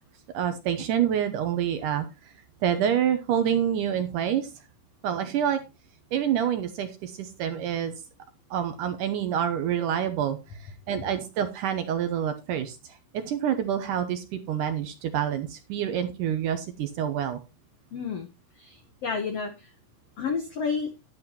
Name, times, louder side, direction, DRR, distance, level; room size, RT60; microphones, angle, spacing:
voice 1, 0.3-2.1 2.6-4.5 5.0-5.6 6.1-7.9 8.5-10.4 10.9-12.8 13.1-17.4, right 9 dB, 75° right, 8 dB, 2.0 m, -27 dB
voice 2, 17.9-18.3 18.6-19.7 20.2-20.9, left 5 dB, 85° left, 6 dB, 1.3 m, -30 dB
10.5 x 9.8 x 2.9 m, 0.27 s
omnidirectional pair, 4.5 m